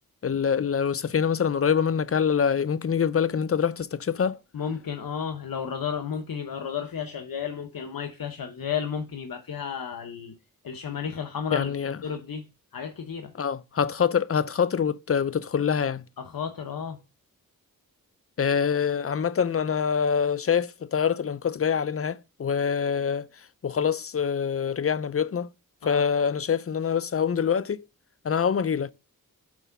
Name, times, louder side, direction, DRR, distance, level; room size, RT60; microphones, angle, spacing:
voice 1, 0.2-4.4 11.5-12.0 13.4-16.0 18.4-23.3 23.6-25.5 25.8-27.8 28.2-28.9, left 7 dB, 40° left, 0.5 m, -25 dB
voice 2, 4.5-10.3 10.6-12.5 12.7-13.3 16.2-17.0 25.8-26.1, left 7 dB, 75° left, 0.9 m, -33 dB
6.1 x 4.5 x 5.5 m
cardioid pair, 60°, 36 cm